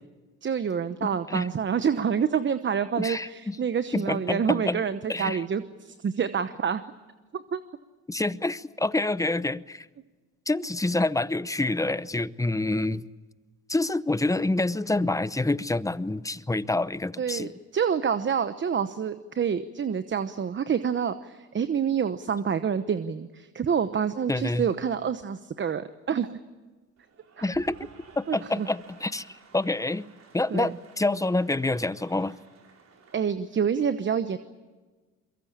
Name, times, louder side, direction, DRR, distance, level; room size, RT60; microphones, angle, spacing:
voice 1, 0.4-6.8 7.3-7.6 17.2-26.4 27.4-27.5 28.3-28.7 30.5-30.7 33.1-34.4, right 7 dB, 40° right, 12 dB, 1.0 m, -27 dB
voice 2, 1.0-1.5 3.0-3.6 3.9-4.8 5.1-5.4 8.1-9.9 10.5-13.0 13.7-17.5 24.3-24.6 27.4-27.9 28.2-30.0 30.3-32.4, left 2 dB, 10° left, 16 dB, 0.8 m, -27 dB
Cheering / Applause, 27.0-33.2, right 5 dB, 60° right, 4.6 m, -54 dB
23.5 x 22.5 x 8.8 m, 1.3 s
cardioid pair, 90°, 30 cm